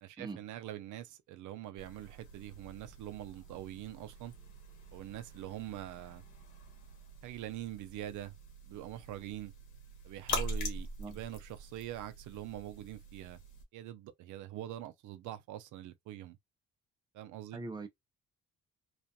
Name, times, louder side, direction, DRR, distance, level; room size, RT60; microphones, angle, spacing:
voice 1, 0.0-4.3 4.9-6.2 7.2-8.3 8.6-9.5 10.0-13.4 13.7-16.4 17.1-17.6, right 12 dB, 80° right, 0.5 m, -44 dB
sound 1, 1.8-13.6, left 1 dB, 85° left, 1.0 m, -44 dB
voice 2, 17.5-17.9, right 3 dB, 15° right, 0.5 m, -41 dB
2.4 x 2.2 x 2.6 m
cardioid pair, 90°, 30 cm